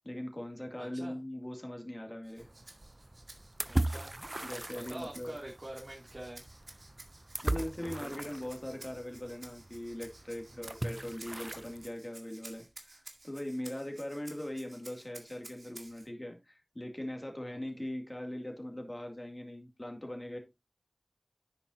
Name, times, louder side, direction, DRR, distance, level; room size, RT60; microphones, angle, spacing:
voice 1, 0.0-2.5 4.4-5.3 7.4-20.4, left 1 dB, 35° left, 3 dB, 2.3 m, -41 dB
voice 2, 0.8-1.2 3.6-4.2 4.7-6.4 8.0-8.2 10.5-10.6, right 1 dB, 55° right, -2 dB, 2.6 m, -45 dB
Rattle (instrument), 2.2-16.1, right 2 dB, 90° right, 1.9 m, -54 dB
sound 1, 2.4-11.9, right 1 dB, 40° right, 0.5 m, -39 dB
10.5 x 8.0 x 2.7 m, 0.22 s
wide cardioid pair, 45°, 0 cm